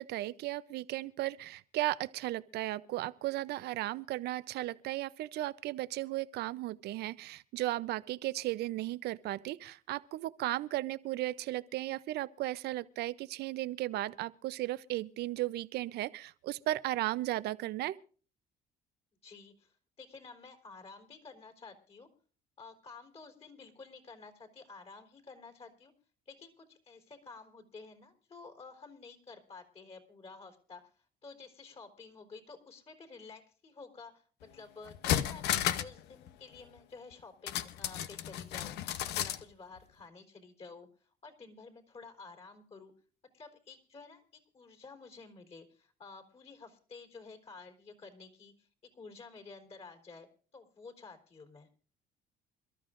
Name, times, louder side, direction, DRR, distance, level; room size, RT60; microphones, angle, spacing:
voice 1, 0.0-18.0, right 16 dB, 75° right, 0.7 m, -35 dB
voice 2, 19.2-22.1 22.6-25.9 26.3-40.9 41.2-42.9 43.3-48.7 48.9-51.7, left 4 dB, 40° left, 4.0 m, -52 dB
sound 1, 34.4-34.5 34.9-36.0 36.3-36.4 37.5-39.4 39.8-39.9, left 11 dB, 80° left, 0.8 m, -33 dB
28.0 x 13.0 x 2.6 m
cardioid pair, 110°, 17 cm